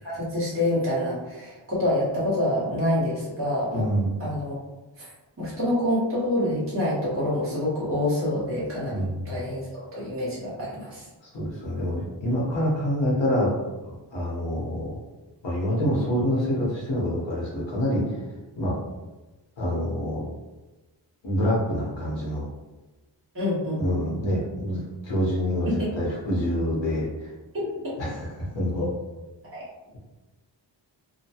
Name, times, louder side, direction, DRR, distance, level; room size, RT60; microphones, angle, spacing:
voice 1, 0.0-3.8 4.2-4.6 5.0-5.1 5.4-11.0 23.3-23.8 25.7-25.9 27.5-27.7 29.5-29.6, left 1 dB, 30° right, -9 dB, 1.1 m, -27 dB
voice 2, 3.7-4.1 8.9-9.4 11.2-13.5 13.8-15.0 15.4-18.2 18.6-18.8 19.6-20.2 21.2-22.5 23.8-27.3 28.0-28.9, equal, 75° left, -5 dB, 1.1 m, -26 dB
2.8 x 2.2 x 2.8 m, 1.1 s
wide cardioid pair, 145°, 45 cm